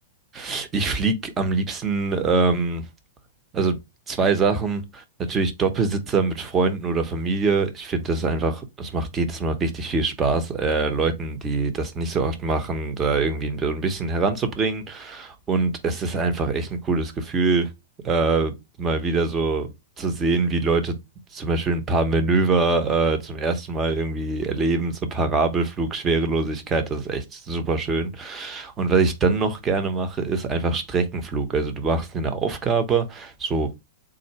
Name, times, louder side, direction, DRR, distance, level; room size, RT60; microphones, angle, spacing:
voice 1, 0.3-2.8 3.5-3.8 4.1-17.7 18.0-18.5 18.8-19.7 20.0-21.0 21.3-33.7, right 4 dB, 20° right, 0.8 m, -24 dB
3.7 x 2.6 x 4.5 m
figure-of-eight pair, 100°, 0 cm